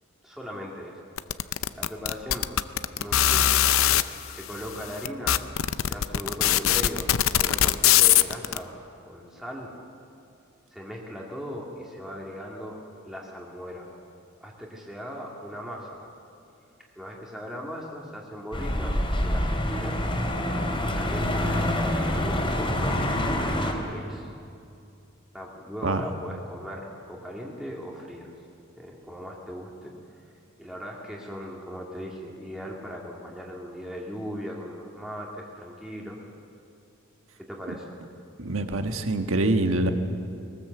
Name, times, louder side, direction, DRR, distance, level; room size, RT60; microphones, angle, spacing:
voice 1, 0.2-1.0 1.4-2.5 3.0-5.5 5.8-8.7 9.0-9.7 10.7-13.9 14.4-16.1 17.0-20.0 20.8-23.0 23.2-24.3 25.3-28.3 28.8-29.9 30.6-36.2 37.4-38.0, equal, ahead, -3 dB, 2.1 m, -39 dB
sound 1, 1.2-4.0 4.7-4.8 5.0-8.6, left 11 dB, 70° left, 0.6 m, -20 dB
sound 2, 18.5-23.7, left 1 dB, 25° left, 3.0 m, -26 dB
voice 2, 38.4-39.9, right 2 dB, 65° right, 6 dB, 1.5 m, -25 dB
21.0 x 19.5 x 7.9 m, 2.5 s
head